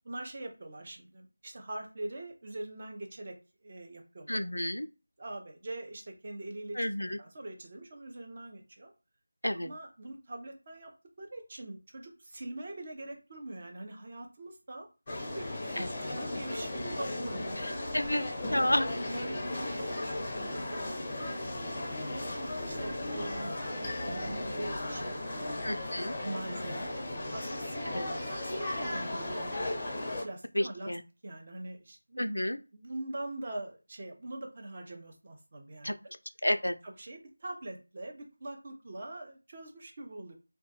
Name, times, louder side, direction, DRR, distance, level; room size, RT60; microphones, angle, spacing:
voice 1, 0.0-3.3 3.6-4.5 5.2-8.9 9.6-10.9 11.2-14.9 15.4-17.9 18.5-18.8 19.1-21.7 22.1-25.8 26.2-27.0 27.3-28.5 28.8-29.7 30.2-30.9 31.2-32.3 32.7-35.9 36.8-40.3, right 1 dB, 30° right, 2 dB, 0.5 m, -43 dB
voice 2, 4.3-4.9 6.8-7.2 9.4-9.7 15.8-15.9 17.6-18.2 18.5-18.9 25.6-26.2 27.9-28.1 30.5-31.0 32.2-32.6 35.8-35.9 36.4-36.7, left 1 dB, 80° left, 9 dB, 0.3 m, -30 dB
sound 1, 15.1-30.2, left 1 dB, 20° left, 0.5 m, -36 dB
2.2 x 2.2 x 2.7 m, 0.31 s
figure-of-eight pair, 170°, 0 cm